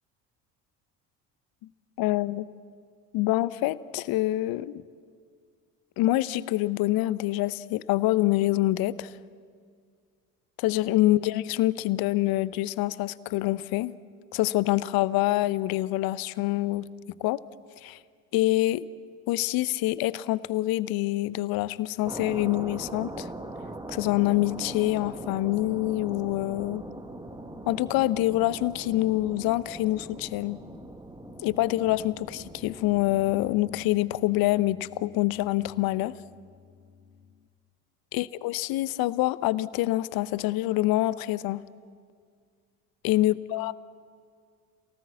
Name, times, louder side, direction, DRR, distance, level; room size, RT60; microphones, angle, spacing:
voice 1, 2.0-2.5 3.1-4.8 6.0-9.1 10.6-14.0 14.3-16.9 17.2-17.4 17.8-18.0 18.3-18.9 19.3-23.3 23.9-26.8 27.7-30.6 31.4-36.1 38.1-41.6 43.0-43.7, left 17 dB, 50° left, 18 dB, 0.9 m, -26 dB
sound 1, 22.0-33.9, right 1 dB, 10° right, 1.8 m, -41 dB
Piano, 25.0-37.5, left 5 dB, 80° left, 1.9 m, -55 dB
27.5 x 18.0 x 8.5 m, 2.1 s
figure-of-eight pair, 60°, 46 cm